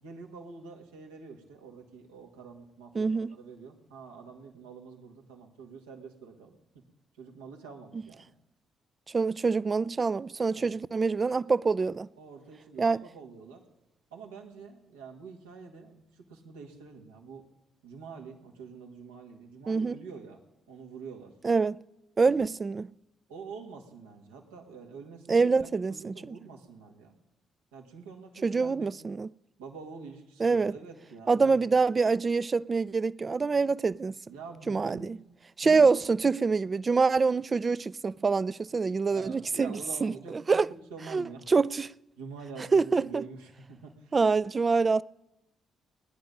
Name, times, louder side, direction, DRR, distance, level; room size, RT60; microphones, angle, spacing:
voice 1, 0.0-6.8 7.2-8.3 10.5-10.7 12.2-13.6 14.1-17.4 17.8-20.4 20.7-21.3 22.2-22.3 23.3-27.1 27.7-28.9 29.6-31.6 34.3-35.1 35.6-35.9 39.1-41.5 42.2-44.2, right 5 dB, 85° right, 1.9 m, -46 dB
voice 2, 2.9-3.3 9.1-12.1 12.8-13.0 19.7-20.0 21.4-21.8 22.2-22.9 25.3-26.4 28.4-29.3 30.4-30.7 31.3-34.2 34.7-35.2 35.6-39.7 40.0-40.7 41.1-41.9 42.7-43.2 44.1-45.0, right 4 dB, 40° right, 0.4 m, -25 dB
20.0 x 10.5 x 5.3 m
hypercardioid pair, 45°, 0 cm